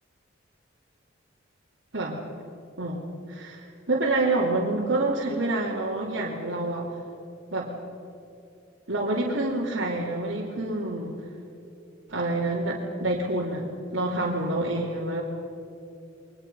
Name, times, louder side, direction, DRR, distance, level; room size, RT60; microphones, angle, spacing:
voice 1, 3.3-6.9 7.5-7.7 8.9-11.2 12.1-15.2, right 2 dB, 70° right, -6 dB, 3.0 m, -27 dB
30.0 x 23.0 x 5.5 m, 2.7 s
head